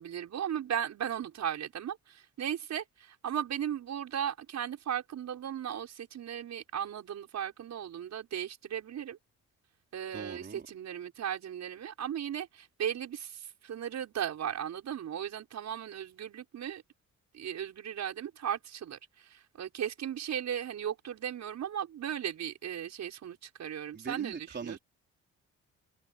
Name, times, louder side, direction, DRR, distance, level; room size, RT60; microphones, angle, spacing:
voice 1, 0.0-9.2 9.9-16.8 17.3-24.8, right 9 dB, 65° right, 6.2 m, -36 dB
voice 2, 10.1-10.7 23.9-24.8, right 5 dB, 35° right, 4.4 m, -41 dB
cardioid pair, 90°, 30 cm